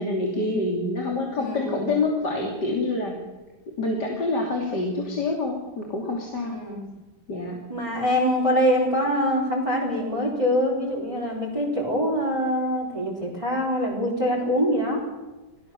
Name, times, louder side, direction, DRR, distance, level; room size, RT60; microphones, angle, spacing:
voice 1, 0.0-3.2 3.8-6.6 7.3-7.6, left 2 dB, 70° left, 0 dB, 3.7 m, -27 dB
voice 2, 1.3-1.9 6.4-6.9 7.7-15.0, equal, 15° right, -3 dB, 4.2 m, -24 dB
28.5 x 18.5 x 7.1 m, 1.2 s
omnidirectional pair, 1.8 m